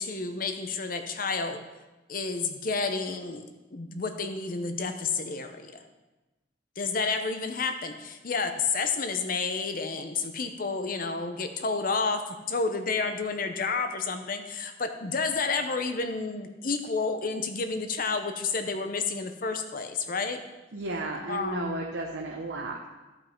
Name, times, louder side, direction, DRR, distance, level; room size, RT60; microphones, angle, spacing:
voice 1, 0.0-1.6 2.1-3.4 3.7-5.8 6.8-20.4 21.3-21.8, left 4 dB, 45° left, 7 dB, 0.7 m, -30 dB
voice 2, 20.7-22.9, right 2 dB, 70° right, -1 dB, 0.9 m, -34 dB
12.0 x 5.5 x 4.4 m, 1.1 s
head